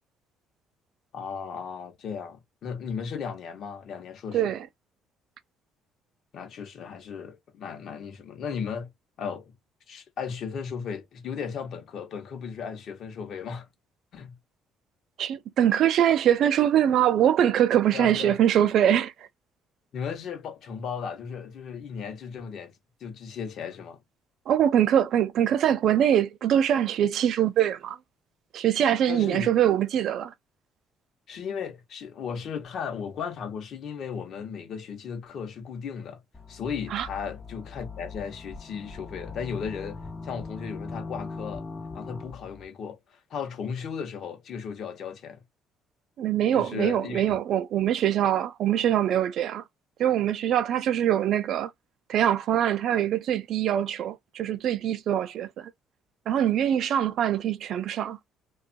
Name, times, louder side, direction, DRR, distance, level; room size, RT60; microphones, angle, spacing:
voice 1, 1.1-4.5 6.3-8.9 9.2-9.5 9.9-13.7 14.1-14.4 17.9-18.4 19.9-24.0 29.1-29.5 31.3-36.2 36.5-41.7 41.9-45.4 46.5-47.4, left 6 dB, 45° left, 0.8 m, -36 dB
voice 2, 4.3-4.7 15.2-19.3 24.5-28.0 28.5-30.3 36.9-37.1 46.2-49.6 50.0-51.7 52.1-55.7 56.3-58.2, right 10 dB, 50° right, 0.3 m, -23 dB
sound 1, 36.3-42.6, left 4 dB, 15° left, 0.4 m, -40 dB
2.9 x 2.3 x 2.5 m
cardioid pair, 165°, 0 cm